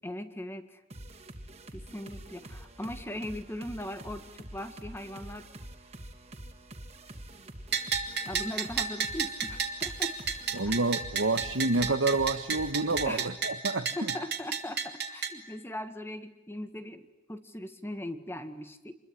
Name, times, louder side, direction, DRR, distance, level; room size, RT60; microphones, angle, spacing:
voice 1, 0.0-0.8 1.7-5.5 8.2-10.2 10.7-10.8 13.1-13.3 14.0-17.0 17.3-19.0, left 1 dB, 10° left, 1.7 m, -39 dB
sound 1, 0.9-13.3, right 1 dB, 35° right, 2.9 m, -46 dB
Bell, 7.7-15.3, right 6 dB, 55° right, 2.7 m, -33 dB
voice 2, 10.5-13.9, right 3 dB, 80° right, 1.4 m, -28 dB
27.0 x 22.0 x 9.9 m
head